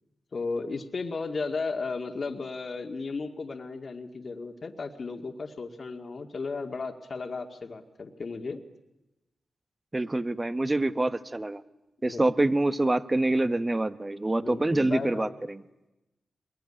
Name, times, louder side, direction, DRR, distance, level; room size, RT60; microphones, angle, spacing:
voice 1, 0.3-8.6 12.1-12.3 14.4-15.3, left 4 dB, 55° left, 4 dB, 2.1 m, -35 dB
voice 2, 9.9-11.6 12.0-15.6, right 2 dB, 25° right, 13 dB, 1.3 m, -26 dB
26.0 x 22.0 x 10.0 m, 0.97 s
cardioid pair, 55°, 0 cm